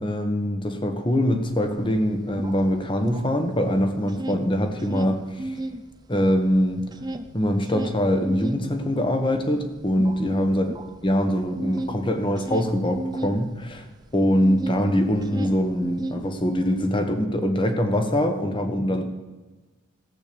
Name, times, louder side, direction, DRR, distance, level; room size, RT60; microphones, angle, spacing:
voice 1, 0.0-5.5 6.1-6.9 7.3-10.7 11.0-13.8 14.1-19.0, equal, 25° left, 6 dB, 1.4 m, -23 dB
sound 1, 1.3-1.4 1.7-3.7 4.0-5.8 6.2-14.8 15.1-16.7, right 1 dB, 20° right, 0.6 m, -34 dB
15.5 x 8.5 x 7.0 m, 1.2 s
head